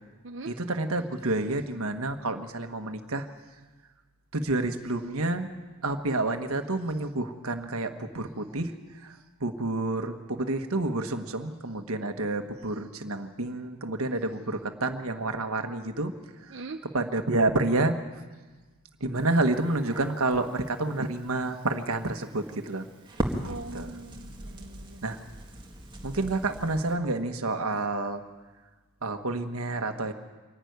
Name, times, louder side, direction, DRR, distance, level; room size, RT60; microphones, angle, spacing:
voice 1, 0.2-0.6 16.5-16.9 23.4-25.1, right 3 dB, 60° right, 3 dB, 0.9 m, -41 dB
voice 2, 0.8-3.3 4.3-5.5 5.8-8.7 9.4-16.1 16.9-17.9 19.0-22.8 23.4-23.9 25.0-25.2 26.0-28.2 29.0-30.1, right 2 dB, 75° right, 7 dB, 1.5 m, -29 dB
Crackle, 19.1-26.9, right 1 dB, 20° right, 2.0 m, -39 dB
25.0 x 11.5 x 9.5 m, 1.3 s
head